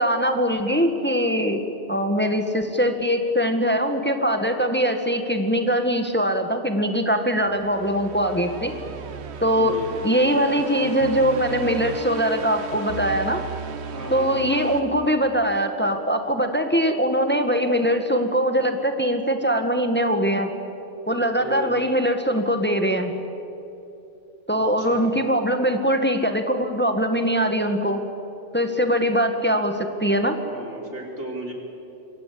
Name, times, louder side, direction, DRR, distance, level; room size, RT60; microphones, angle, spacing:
voice 1, 0.0-1.6 1.9-8.7 9.4-13.4 14.1-20.5 21.1-23.1 24.5-28.0 28.5-30.4, equal, 10° left, 6 dB, 1.6 m, -22 dB
sound 1, 7.4-15.7, right 6 dB, 65° right, 1.2 m, -36 dB
voice 2, 9.5-9.9 13.9-14.5 21.2-21.8 24.8-25.1 30.4-31.5, right 1 dB, 80° right, 0 dB, 4.5 m, -35 dB
27.5 x 23.0 x 8.6 m, 2.9 s
omnidirectional pair, 1.2 m